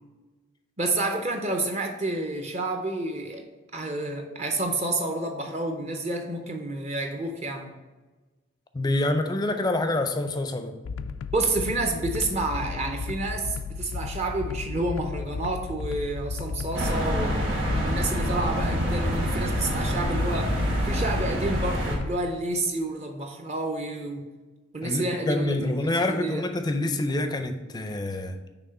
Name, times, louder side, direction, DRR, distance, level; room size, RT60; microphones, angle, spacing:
voice 1, 0.8-3.4 3.7-7.8 11.3-17.4 17.8-20.6 20.8-24.3 24.7-26.5, right 2 dB, 35° right, 0.6 m, -29 dB
voice 2, 8.7-10.8 24.8-28.4, left 2 dB, 20° left, 0.4 m, -27 dB
sound 1, 10.8-22.1, left 5 dB, 90° left, 0.3 m, -34 dB
sound 2, 16.7-22.0, equal, 70° right, 1.6 m, -26 dB
5.8 x 3.3 x 5.3 m
head